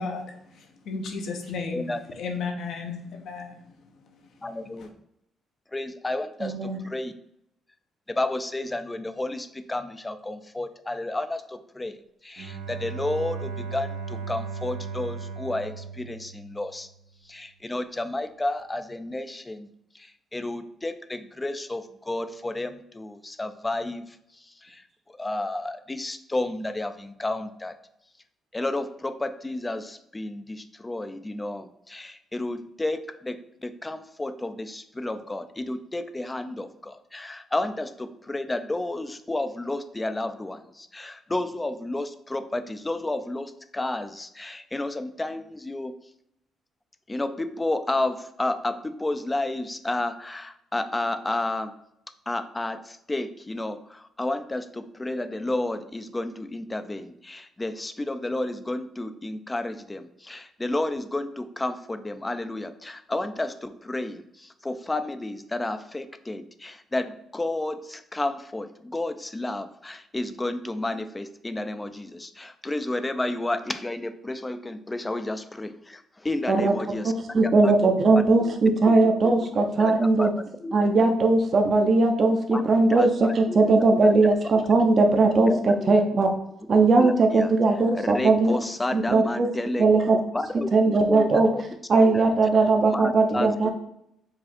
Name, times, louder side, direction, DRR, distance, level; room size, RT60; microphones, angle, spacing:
voice 1, 0.0-3.6 4.8-4.9, left 4 dB, 70° left, 4 dB, 0.9 m, -34 dB
voice 2, 4.4-4.9 5.7-7.1 8.1-11.9 12.2-16.9 17.3-19.7 20.3-24.0 24.6-24.8 25.2-27.7 28.5-45.9 47.1-51.7 52.3-77.1 77.4-78.5 79.2-79.3 79.6-80.7 82.5-82.6 82.9-83.6 83.9-84.1 85.4-85.9 86.7-87.5 87.9-90.7 91.0-91.6 92.0-92.2 92.8-93.7, left 2 dB, 15° left, 10 dB, 0.4 m, -31 dB
voice 3, 6.4-6.8 76.5-76.7 77.0-80.3 80.7-86.3 86.7-88.6 88.9-89.5 89.8-90.2 90.7-91.5 91.9-93.7, right 3 dB, 45° right, 4 dB, 0.6 m, -20 dB
Bowed string instrument, 12.4-17.0, right 5 dB, 85° right, 0.7 m, -36 dB
4.9 x 2.4 x 4.2 m, 0.77 s
cardioid pair, 90°, 0 cm